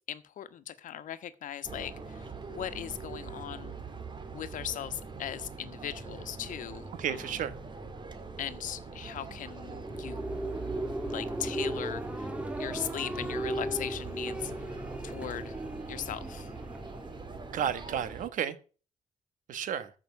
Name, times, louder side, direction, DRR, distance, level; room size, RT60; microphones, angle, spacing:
voice 1, 0.1-3.7 4.3-7.3 8.4-10.2 11.1-12.3 12.6-14.8 15.0-15.6 15.9-16.5, left 10 dB, 80° left, 12 dB, 1.2 m, -39 dB
sound 1, 1.6-18.3, right 4 dB, 35° right, 2.3 m, -43 dB
voice 2, 7.0-7.5 17.5-18.5 19.5-19.9, right 9 dB, 85° right, 12 dB, 1.5 m, -32 dB
sound 2, 9.4-18.1, right 1 dB, 10° right, 1.8 m, -37 dB
14.0 x 6.0 x 8.1 m, 0.37 s
cardioid pair, 85°, 13 cm